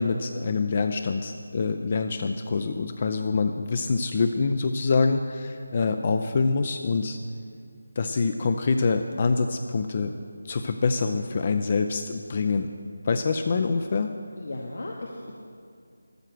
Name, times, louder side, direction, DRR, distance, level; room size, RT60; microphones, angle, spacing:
voice 1, 0.0-7.2 8.0-10.2 10.4-12.7 13.0-14.1, left 4 dB, 35° left, 7 dB, 0.4 m, -25 dB
voice 2, 14.4-15.3, left 2 dB, 55° left, -1 dB, 1.0 m, -36 dB
13.0 x 6.5 x 6.1 m, 2.3 s
figure-of-eight pair, 160°, 0 cm